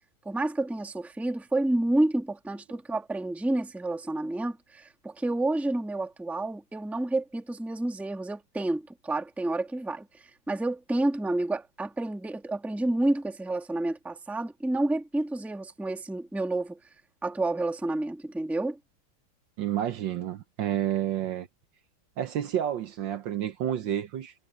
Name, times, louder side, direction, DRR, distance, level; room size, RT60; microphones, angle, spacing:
voice 1, 0.2-16.8 17.2-18.8, right 2 dB, ahead, 1.3 m, -29 dB
voice 2, 19.6-21.5 22.2-24.3, right 11 dB, 65° right, 1.5 m, -30 dB
omnidirectional pair, 2.3 m